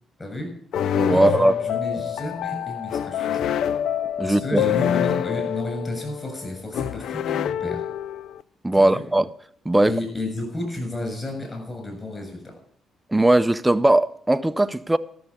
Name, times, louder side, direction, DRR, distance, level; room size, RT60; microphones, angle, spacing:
voice 1, 0.2-0.5 1.1-3.5 4.2-7.9 8.7-9.0 9.8-12.5, left 2 dB, 25° left, 7.1 m, -32 dB
sound 1, 0.7-8.4, left 9 dB, 75° left, 0.4 m, -26 dB
voice 2, 0.9-1.5 4.2-4.6 8.6-9.3 9.7-9.9 13.1-15.0, right 1 dB, 10° right, 0.6 m, -19 dB
13.0 x 6.8 x 8.5 m
cardioid pair, 90°, 0 cm